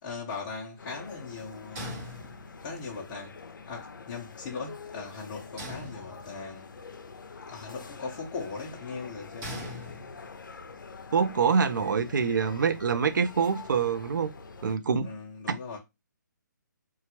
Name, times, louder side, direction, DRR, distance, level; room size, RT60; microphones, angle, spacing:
voice 1, 0.0-2.0 2.6-3.4 3.7-6.7 7.5-9.6 15.0-15.8, left 4 dB, 25° left, 0.7 m, -39 dB
sound 1, 0.8-14.8, left 4 dB, 85° left, 0.5 m, -46 dB
sound 2, 1.8-2.8 5.6-6.6 9.4-10.5, equal, 20° right, 0.8 m, -41 dB
voice 2, 11.1-14.3 14.6-15.1 15.5-15.6, right 6 dB, 75° right, 0.5 m, -25 dB
2.9 x 2.3 x 2.9 m
hypercardioid pair, 155°, 10 cm